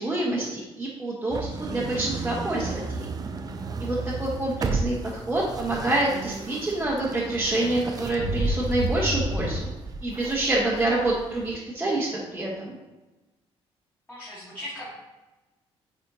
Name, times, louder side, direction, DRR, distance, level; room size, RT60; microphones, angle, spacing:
voice 1, 0.0-3.1 3.8-9.7 10.0-12.7, right 2 dB, 15° right, -7 dB, 1.2 m, -27 dB
sound 1, 1.3-11.6, right 4 dB, 35° right, 0.5 m, -35 dB
sound 2, 7.2-7.3 7.7-9.6, right 1 dB, 90° right, 1.4 m, -27 dB
voice 2, 14.1-14.9, left 1 dB, 15° left, -8 dB, 1.7 m, -38 dB
8.5 x 4.4 x 2.7 m, 1.1 s
cardioid pair, 115°, 11 cm